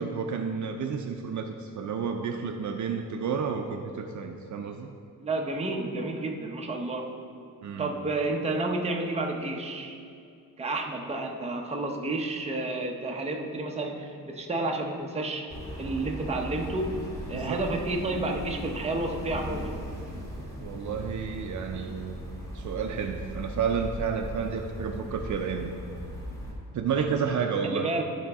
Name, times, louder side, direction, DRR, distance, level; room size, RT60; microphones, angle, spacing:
voice 1, 0.0-4.9 7.6-7.9 17.3-17.6 20.6-22.2 22.5-25.7 26.7-27.9, right 6 dB, 55° right, 5 dB, 0.5 m, -31 dB
voice 2, 5.2-7.1 7.8-10.0 10.6-15.4 15.8-19.8 27.6-28.0, right 2 dB, 20° right, 1 dB, 0.7 m, -31 dB
sound 1, 15.5-26.5, equal, 10° left, 1.9 m, -38 dB
13.0 x 5.0 x 3.5 m, 2.3 s
wide cardioid pair, 140°, 35 cm